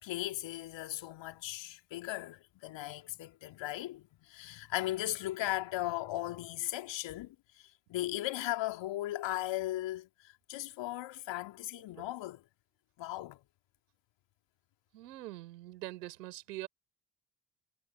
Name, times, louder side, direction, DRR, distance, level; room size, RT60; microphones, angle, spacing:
voice 1, 0.0-10.1 10.5-12.4 13.0-13.4, left 15 dB, 60° left, 2.6 m, -37 dB
voice 2, 14.9-16.7, right 17 dB, 80° right, 5.1 m, -44 dB
figure-of-eight pair, 45°, 49 cm